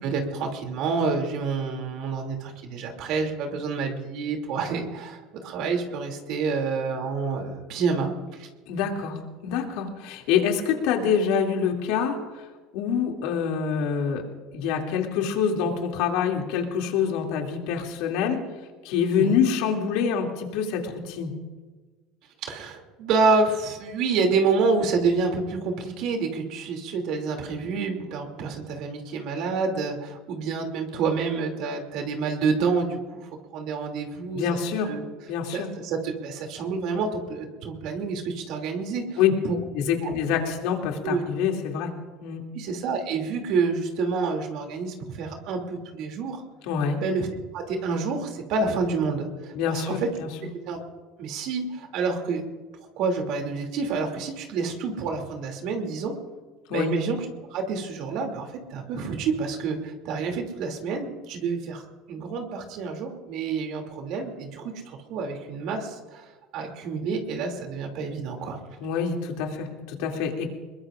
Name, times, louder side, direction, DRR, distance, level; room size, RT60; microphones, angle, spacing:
voice 1, 0.0-8.1 8.4-8.5 19.2-19.4 22.4-34.4 34.9-35.0 35.5-39.6 40.0-40.1 41.0-41.2 42.5-46.4 47.0-47.3 47.5-50.1 50.7-50.8 51.2-52.5 53.0-56.2 56.7-57.2 57.5-61.8 62.1-66.3 66.5-68.6, right 4 dB, 60° right, 3 dB, 2.7 m, -28 dB
voice 2, 8.7-12.2 12.7-14.2 14.5-18.4 18.8-21.3 34.3-34.9 35.3-35.7 39.2-39.3 39.7-41.9 42.2-42.5 46.7-47.0 49.5-50.3 56.7-57.0 68.8-70.5, left 7 dB, 75° left, 2 dB, 2.6 m, -26 dB
22.0 x 21.0 x 2.5 m, 1.3 s
supercardioid pair, 110°, 0 cm